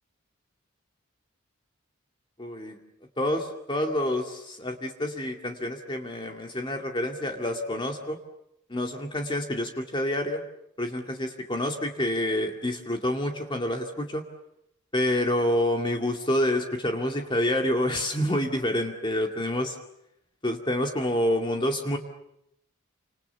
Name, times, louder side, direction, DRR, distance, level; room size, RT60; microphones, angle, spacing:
voice 1, 2.4-2.8 3.2-8.2 8.7-10.4 10.8-14.2 14.9-19.8 20.4-22.0, left 1 dB, 20° left, 3 dB, 2.3 m, -28 dB
29.5 x 27.0 x 7.0 m, 0.79 s
head